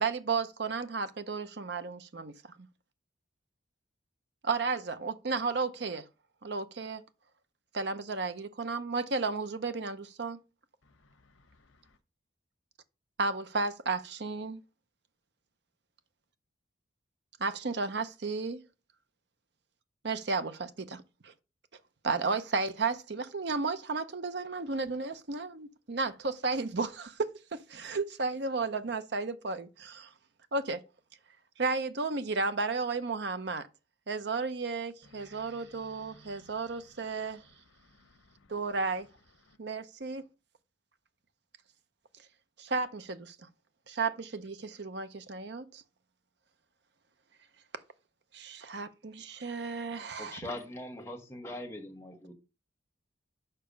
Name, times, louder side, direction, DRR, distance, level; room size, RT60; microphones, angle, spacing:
voice 1, 0.0-2.3 4.4-6.1 6.4-7.0 7.7-10.4 13.2-14.6 17.4-18.6 20.0-21.3 22.0-30.1 30.5-30.8 31.6-33.7 34.1-37.4 38.5-39.1 39.6-40.2 42.6-43.4 43.9-45.8 48.3-50.4, right 4 dB, 55° right, 0.7 m, -33 dB
voice 2, 10.8-12.0 35.1-36.6 37.1-37.2 37.7-38.5 39.5-39.6, left 1 dB, 85° left, 1.0 m, -61 dB
voice 3, 50.2-52.3, left 1 dB, 15° left, 1.1 m, -41 dB
6.7 x 5.7 x 5.1 m
head